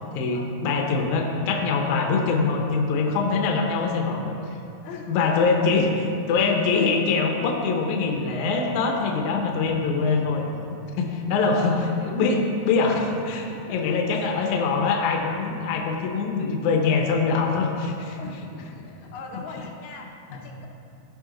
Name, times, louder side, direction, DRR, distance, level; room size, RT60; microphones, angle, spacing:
voice 1, 0.1-4.3 5.1-10.4 11.0-11.7 12.0-18.2 20.3-20.4, left 4 dB, 90° left, 1 dB, 1.7 m, -23 dB
voice 2, 4.8-5.1 6.3-6.5 11.3-12.0 13.7-14.4 15.8-16.0 18.2-20.7, left 4 dB, 70° left, 0 dB, 2.1 m, -41 dB
15.0 x 5.7 x 3.8 m, 2.6 s
omnidirectional pair, 4.7 m